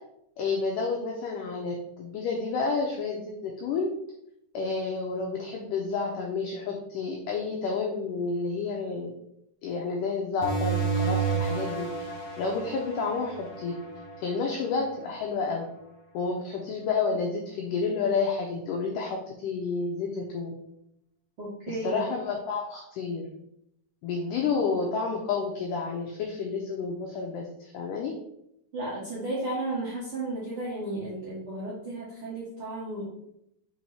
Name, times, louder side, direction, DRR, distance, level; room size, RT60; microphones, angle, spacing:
voice 1, 0.4-3.9 4.5-9.1 9.6-11.9 12.4-13.7 14.2-15.7 16.1-20.5 21.7-23.3 24.0-28.1, left 4 dB, 85° left, 0 dB, 1.8 m, -30 dB
sound 1, 10.4-15.6, right 5 dB, 40° left, 2.9 m, -32 dB
voice 2, 21.4-22.0 28.7-33.1, right 2 dB, 60° right, -7 dB, 1.4 m, -33 dB
5.6 x 4.6 x 4.1 m, 0.77 s
omnidirectional pair, 4.7 m